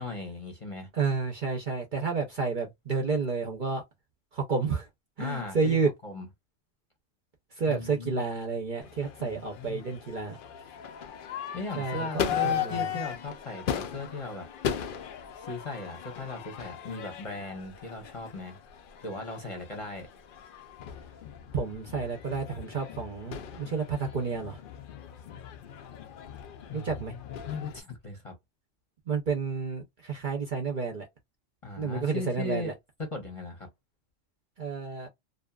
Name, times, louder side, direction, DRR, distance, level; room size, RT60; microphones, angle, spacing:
voice 1, 0.0-0.9 5.2-6.3 7.7-8.3 9.2-9.9 11.5-14.5 15.4-18.6 19.0-20.1 26.7-28.3 31.6-33.7, left 3 dB, 30° left, 0.8 m, -38 dB
voice 2, 0.9-3.8 4.3-4.9 5.2-5.9 7.6-10.4 11.8-12.9 21.5-24.6 26.7-27.1 29.1-31.1 31.8-32.7 34.6-35.1, right 5 dB, 50° right, 0.7 m, -30 dB
Crowd / Fireworks, 8.8-27.8, left 9 dB, 60° left, 0.5 m, -37 dB
2.7 x 2.4 x 2.3 m
omnidirectional pair, 1.3 m